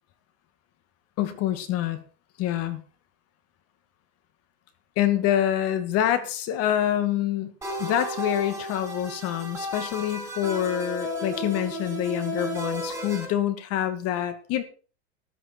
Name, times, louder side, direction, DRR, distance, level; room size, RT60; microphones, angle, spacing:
voice 1, 1.2-2.0 2.4-2.8 5.0-7.5 7.8-14.6, left 11 dB, 45° left, 10 dB, 2.3 m, -26 dB
sound 1, 7.6-13.2, equal, 10° right, 7.9 m, -33 dB
14.0 x 12.0 x 4.5 m, 0.38 s
supercardioid pair, 120°, 33 cm